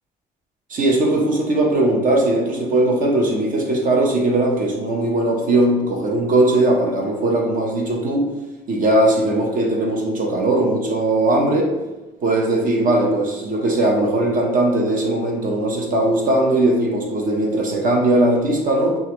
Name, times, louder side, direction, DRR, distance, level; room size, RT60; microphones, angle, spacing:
voice 1, 0.7-8.2 8.7-11.7 12.2-19.0, right 1 dB, 55° right, 0 dB, 1.0 m, -19 dB
5.6 x 2.4 x 3.0 m, 1.1 s
cardioid pair, 110°, 17 cm